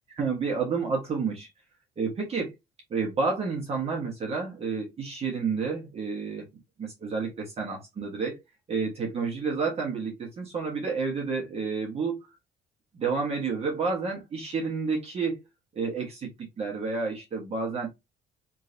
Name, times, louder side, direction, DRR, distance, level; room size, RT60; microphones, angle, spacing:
voice 1, 0.2-1.5 2.0-2.5 2.9-6.5 6.8-8.4 8.7-12.2 12.9-15.4 15.7-17.9, right 4 dB, 35° right, 1.5 m, -30 dB
3.8 x 3.1 x 2.8 m
cardioid pair, 110°, 17 cm